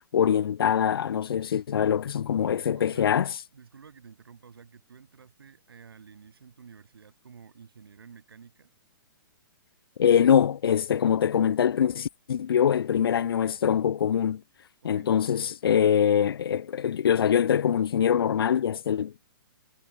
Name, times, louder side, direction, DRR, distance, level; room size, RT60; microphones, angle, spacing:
voice 1, 0.0-3.3 10.0-14.4 14.8-19.2, left 8 dB, 85° left, 0.5 m, -23 dB
voice 2, 2.7-3.2 3.5-8.7 14.8-15.1, right 6 dB, 90° right, 6.9 m, -51 dB
hypercardioid pair, 150°, 12 cm